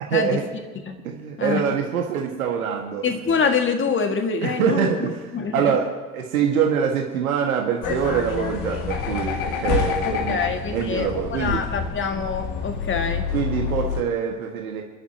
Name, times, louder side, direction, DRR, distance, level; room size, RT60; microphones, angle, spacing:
voice 1, 0.1-0.4 1.0-3.0 4.4-10.4 10.7-11.6 13.3-14.8, right 7 dB, 70° right, 1 dB, 2.0 m, -24 dB
voice 2, 3.0-5.1 5.3-5.7 10.0-13.3, left 5 dB, 25° left, 5 dB, 2.1 m, -25 dB
sound 1, 7.8-14.0, left 6 dB, 45° left, 2.0 m, -27 dB
29.5 x 11.5 x 3.0 m, 1.3 s
figure-of-eight pair, 75°, 44 cm